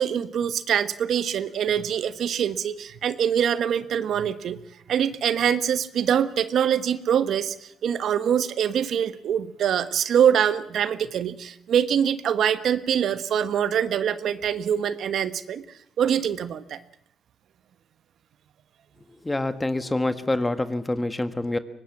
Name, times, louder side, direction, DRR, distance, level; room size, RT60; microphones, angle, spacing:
voice 1, 0.0-4.6 4.9-15.6 16.0-16.8, right 8 dB, 70° right, 12 dB, 1.1 m, -24 dB
voice 2, 19.2-21.6, left 2 dB, 15° left, 10 dB, 1.6 m, -26 dB
23.5 x 19.5 x 7.3 m, 0.71 s
cardioid pair, 90°, 0 cm